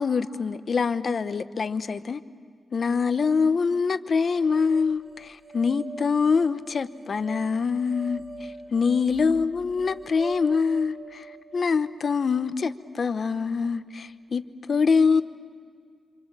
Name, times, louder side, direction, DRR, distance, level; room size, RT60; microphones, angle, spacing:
voice 1, 0.0-2.2 2.7-11.3 11.5-15.2, left 5 dB, 55° left, 0.9 m, -24 dB
sound 1, 4.4-13.5, right 4 dB, 35° right, 5.2 m, -44 dB
27.0 x 26.5 x 7.5 m
wide cardioid pair, 100°, 0 cm